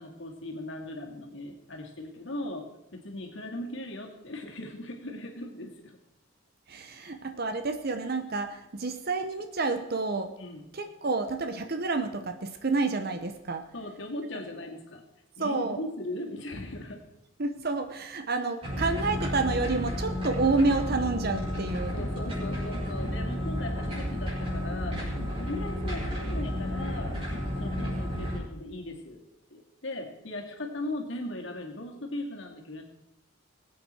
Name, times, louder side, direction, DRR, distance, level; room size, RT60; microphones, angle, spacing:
voice 1, 0.0-6.0 7.0-7.2 10.4-10.7 13.7-15.0 15.4-17.0 21.9-27.2 27.6-29.2 29.5-32.8, left 1 dB, 65° left, 2 dB, 2.3 m, -38 dB
voice 2, 6.7-10.3 10.7-13.6 15.4-15.8 17.4-21.9, right 3 dB, 50° right, 7 dB, 0.9 m, -29 dB
sound 1, 18.6-28.4, equal, 30° right, 5.8 m, -32 dB
21.0 x 8.6 x 4.5 m, 0.85 s
head